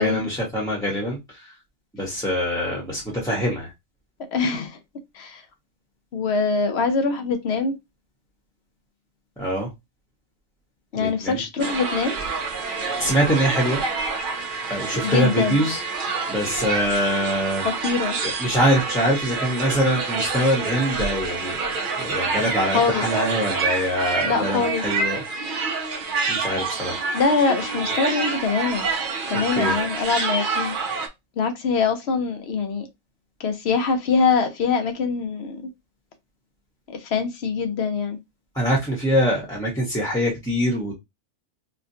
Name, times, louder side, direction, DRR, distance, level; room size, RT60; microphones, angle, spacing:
voice 1, 0.0-1.5 1.9-3.7 9.4-9.7 10.9-11.4 13.0-13.8 14.6-17.7 18.2-21.6 22.0-25.2 26.3-27.0 29.5-29.8 38.5-40.9, equal, 5° left, 0.8 m, -24 dB
voice 2, 4.3-4.8 5.1-5.4 6.1-7.8 10.9-12.2 15.0-15.6 17.8-18.2 22.7-23.0 24.2-24.8 27.1-28.9 29.3-30.8 31.4-32.9 33.4-35.6 36.9-38.2, left 5 dB, 65° left, 0.9 m, -23 dB
sound 1, 11.6-31.1, right 4 dB, 55° right, 0.7 m, -27 dB
4.2 x 2.2 x 2.7 m
omnidirectional pair, 1.2 m